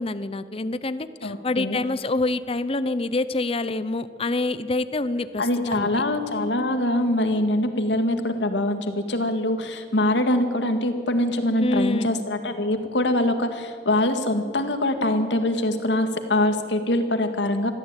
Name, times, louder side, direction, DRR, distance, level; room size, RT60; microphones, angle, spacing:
voice 1, 0.0-5.9 11.6-12.1, left 2 dB, 30° left, 13 dB, 0.7 m, -26 dB
voice 2, 1.2-1.8 5.4-17.7, left 1 dB, 80° left, 7 dB, 2.1 m, -23 dB
22.0 x 14.5 x 9.1 m, 2.1 s
head